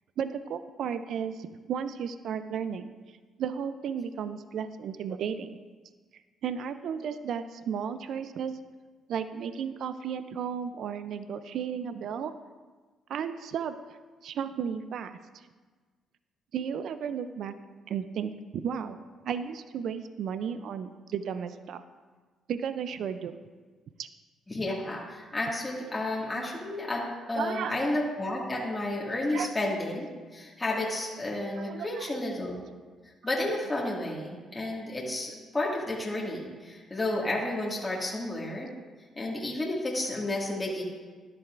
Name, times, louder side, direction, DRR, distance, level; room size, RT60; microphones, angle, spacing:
voice 1, 0.2-2.9 3.4-5.6 6.4-8.5 9.1-12.3 13.1-13.8 14.2-15.4 16.5-17.6 17.9-19.0 19.2-21.8 22.5-23.3 24.0-24.1 27.4-27.8 29.3-29.5 31.6-32.1, right 7 dB, 70° right, 11 dB, 0.4 m, -34 dB
voice 2, 24.5-32.6 33.2-38.7 39.2-40.8, left 1 dB, 20° left, -4 dB, 1.9 m, -31 dB
12.5 x 10.5 x 2.5 m, 1.4 s
cardioid pair, 90°, 0 cm